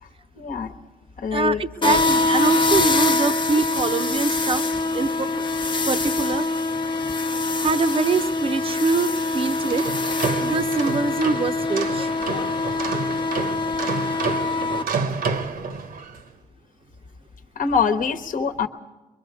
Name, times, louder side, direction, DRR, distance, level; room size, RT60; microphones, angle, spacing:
voice 1, 0.3-0.7 1.2-2.0 15.2-15.3 17.5-18.7, left 6 dB, 60° left, 8 dB, 1.1 m, -24 dB
voice 2, 1.3-4.6 4.9-5.4 5.8-6.4 7.6-9.8 10.4-12.1, right 4 dB, 35° right, 9 dB, 0.8 m, -24 dB
sound 1, 1.8-14.8, left 3 dB, 30° left, 0.8 m, -24 dB
sound 2, 9.5-16.2, right 4 dB, 70° right, 1.2 m, -29 dB
23.5 x 23.0 x 4.8 m, 1.1 s
cardioid pair, 80°, 16 cm